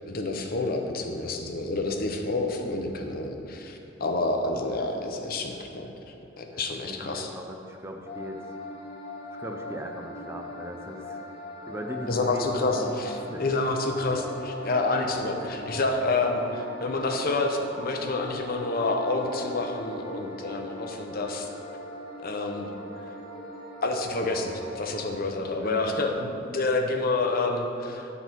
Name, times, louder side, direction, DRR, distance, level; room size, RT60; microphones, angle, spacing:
voice 1, 0.1-5.9 6.4-7.3 12.1-21.5 22.2-22.7 23.8-28.1, left 2 dB, 50° left, 3 dB, 0.7 m, -28 dB
voice 2, 6.9-8.4 9.4-11.2 11.7-13.4 25.6-26.0, equal, 15° right, 3 dB, 0.5 m, -39 dB
sound 1, 8.1-25.2, left 1 dB, 35° left, 1.5 m, -40 dB
8.9 x 4.1 x 6.0 m, 2.8 s
head